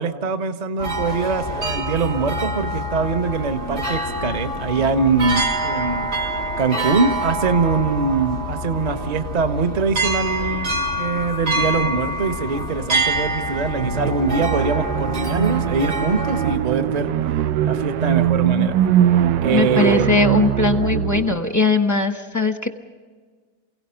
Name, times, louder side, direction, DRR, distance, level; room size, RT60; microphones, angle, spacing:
voice 1, 0.0-6.1 6.6-17.1 17.6-18.8 19.4-20.1, right 4 dB, 30° right, 8 dB, 0.8 m, -23 dB
sound 1, 0.8-16.6, right 1 dB, 60° right, 2.7 m, -26 dB
sound 2, 13.8-21.4, right 10 dB, 85° right, 1.4 m, -21 dB
voice 2, 19.5-22.7, left 4 dB, 15° left, 6 dB, 0.8 m, -20 dB
28.5 x 17.0 x 5.7 m, 1.5 s
omnidirectional pair, 1.9 m